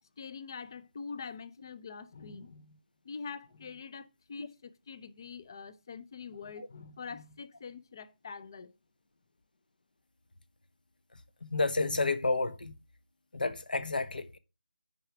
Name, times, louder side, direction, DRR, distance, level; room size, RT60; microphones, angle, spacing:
voice 1, 0.2-8.7, left 5 dB, 25° left, 0.5 m, -44 dB
voice 2, 11.4-12.7 13.3-14.4, left 3 dB, 65° left, 1.0 m, -30 dB
9.5 x 4.8 x 5.8 m
figure-of-eight pair, 170°, 5 cm